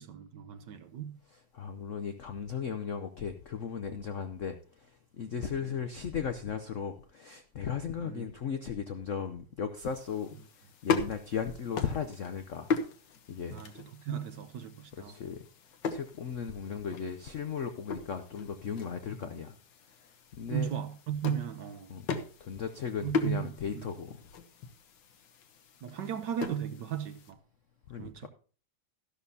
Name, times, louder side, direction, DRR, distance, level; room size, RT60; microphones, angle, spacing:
voice 1, 0.0-1.2 5.4-5.8 8.0-8.3 13.5-15.2 19.2-19.3 20.5-21.9 23.0-23.9 25.8-27.4 28.0-28.3, right 9 dB, 65° right, 1.3 m, -36 dB
voice 2, 1.3-4.9 5.2-10.4 10.8-12.7 13.3-13.6 15.0-15.4 15.9-19.5 20.3-20.7 21.9-22.1 22.4-24.2 27.9-28.3, left 7 dB, 85° left, 0.6 m, -36 dB
sound 1, 9.8-27.3, left 5 dB, 60° left, 1.6 m, -39 dB
13.0 x 11.5 x 2.8 m
omnidirectional pair, 2.4 m